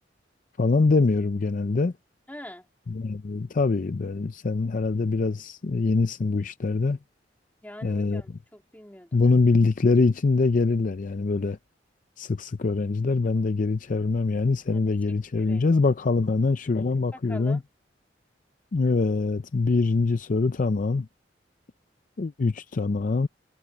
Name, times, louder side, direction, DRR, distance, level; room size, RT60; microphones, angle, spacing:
voice 1, 0.6-1.9 2.9-7.0 7.8-8.2 9.1-11.6 12.2-17.6 18.7-21.1 22.2-23.3, left 3 dB, 45° left, 0.5 m, -24 dB
voice 2, 2.3-2.7 7.6-9.4 14.7-14.8 15.4-15.8 17.1-17.6, left 1 dB, 10° left, 3.3 m, -44 dB
head